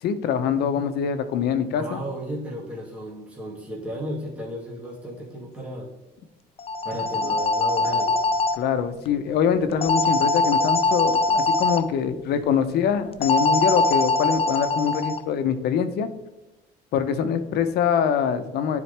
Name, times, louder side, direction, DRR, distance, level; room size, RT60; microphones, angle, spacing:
voice 1, 0.0-2.0 8.6-16.1 16.9-18.8, left 7 dB, 75° left, 9 dB, 0.7 m, -24 dB
voice 2, 1.7-5.9 6.8-8.2, equal, 5° right, -5 dB, 1.9 m, -34 dB
sound 1, 6.6-8.6 9.8-11.8 13.2-15.2, left 3 dB, 35° left, 0.5 m, -22 dB
10.0 x 4.1 x 3.3 m, 0.97 s
cardioid pair, 110°, 17 cm